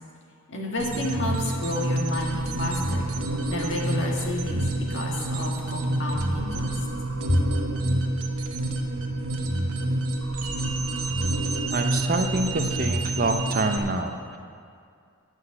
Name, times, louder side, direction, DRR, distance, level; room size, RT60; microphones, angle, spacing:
voice 1, 0.5-3.1 3.5-6.8 7.3-7.4, left 1 dB, 55° left, -1 dB, 1.8 m, -30 dB
sound 1, 0.8-13.8, right 2 dB, 80° right, 1.1 m, -28 dB
voice 2, 11.7-14.4, right 2 dB, 40° right, 6 dB, 0.6 m, -26 dB
9.5 x 6.4 x 8.8 m, 2.3 s
head